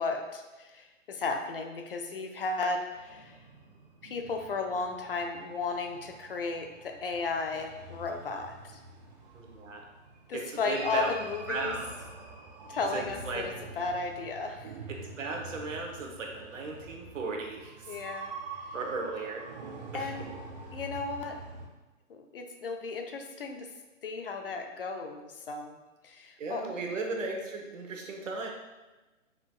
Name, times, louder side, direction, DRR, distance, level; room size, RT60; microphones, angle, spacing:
voice 1, 0.0-3.4 4.0-8.8 10.3-11.8 12.7-14.7 17.9-18.3 19.9-20.3 20.7-21.4 22.1-23.7 24.0-25.8 26.0-26.6, left 3 dB, 45° left, 4 dB, 0.4 m, -34 dB
sound 1, 2.9-21.7, right 3 dB, 35° right, 0.6 m, -46 dB
voice 2, 9.3-9.8 10.3-11.1 11.5-11.8 12.9-13.4 14.9-18.0 18.7-19.4 19.9-20.1 26.4-28.5, right 3 dB, 70° right, 1 dB, 1.1 m, -36 dB
4.6 x 3.9 x 2.4 m, 1.1 s
hypercardioid pair, 150°, 40 cm